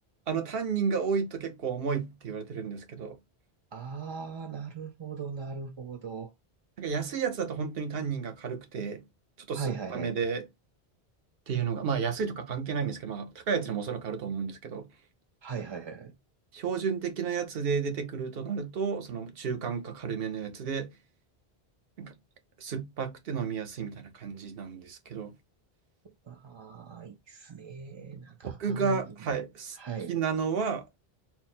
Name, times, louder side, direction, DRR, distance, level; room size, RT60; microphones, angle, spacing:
voice 1, 0.3-3.2 6.8-9.0 9.5-10.4 11.5-14.9 16.5-20.9 22.0-22.1 22.6-25.3 28.4-29.8 30.1-31.0, right 6 dB, 70° right, 1.0 m, -32 dB
voice 2, 3.7-6.3 9.5-10.1 15.4-16.1 26.3-29.1 29.8-30.1, right 5 dB, 45° right, 0.3 m, -39 dB
4.0 x 2.1 x 4.1 m
omnidirectional pair, 1.1 m